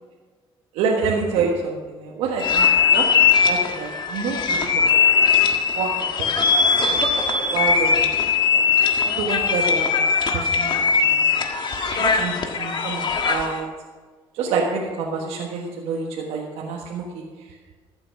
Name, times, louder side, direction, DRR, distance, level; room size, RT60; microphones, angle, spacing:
voice 1, 0.7-3.1 3.5-4.7 5.7-6.3 7.5-8.1 8.5-8.6 9.2-9.9 10.3-11.3 12.0-13.7 14.3-17.2, right 4 dB, 90° right, -2 dB, 1.4 m, -27 dB
sound 1, 2.4-13.6, left 6 dB, 50° left, 1.6 m, -20 dB
14.0 x 8.0 x 5.9 m, 1.5 s
cardioid pair, 85°, 10 cm